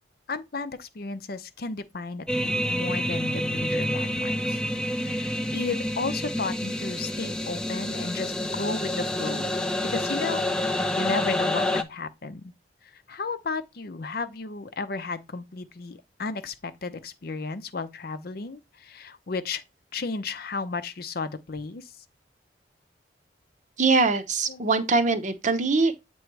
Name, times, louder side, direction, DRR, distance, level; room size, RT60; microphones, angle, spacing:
voice 1, 0.3-4.6 5.0-10.4 11.0-12.5 12.8-19.6 19.9-21.9 24.5-24.6, left 4 dB, 55° left, 0.6 m, -34 dB
sound 1, 2.3-11.8, left 1 dB, 5° left, 0.4 m, -28 dB
voice 2, 23.8-26.0, right 3 dB, 40° right, 0.7 m, -22 dB
7.7 x 3.0 x 4.6 m
head